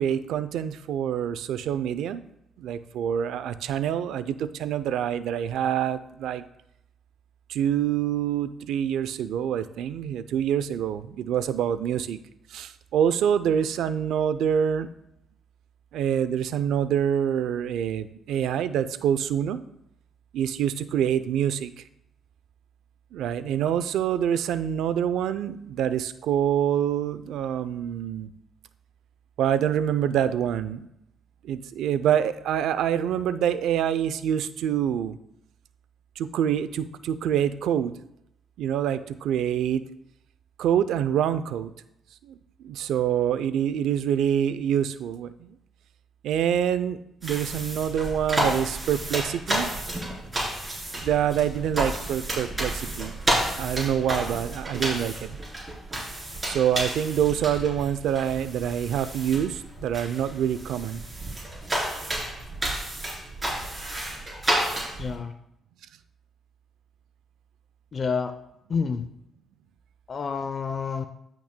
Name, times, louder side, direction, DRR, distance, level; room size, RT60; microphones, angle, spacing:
voice 1, 0.0-2.2 2.6-6.4 7.5-12.2 12.5-14.9 15.9-19.6 20.3-21.7 23.1-28.3 29.4-30.9 31.4-35.2 36.2-37.9 38.6-39.9 40.6-41.7 42.3-42.4 42.6-45.5 46.2-49.7 50.9-53.1 53.6-55.4 56.4-61.0, right 9 dB, 80° right, 13 dB, 0.4 m, -26 dB
sound 1, 47.2-65.1, right 1 dB, 20° right, 3.5 m, -31 dB
voice 2, 65.0-65.3 67.9-68.3 68.7-69.1 70.1-71.0, left 5 dB, 45° left, 9 dB, 0.5 m, -28 dB
14.5 x 6.0 x 2.2 m, 0.80 s
cardioid pair, 90°, 0 cm